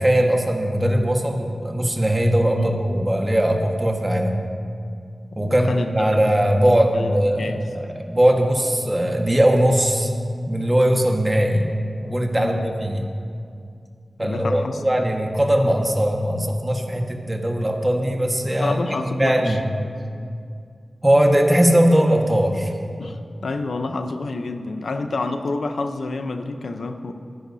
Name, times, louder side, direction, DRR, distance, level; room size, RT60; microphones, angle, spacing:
voice 1, 0.0-4.4 5.3-10.1 10.5-11.6 12.0-13.0 14.2-18.8 19.1-19.6 21.0-22.7, right 1 dB, 20° right, 1 dB, 1.6 m, -20 dB
voice 2, 5.3-6.2 6.9-7.7 12.4-12.6 14.2-14.8 18.6-19.6 23.0-27.1, left 3 dB, 80° left, 7 dB, 0.8 m, -28 dB
23.5 x 10.0 x 2.8 m, 2.3 s
cardioid pair, 45°, 0 cm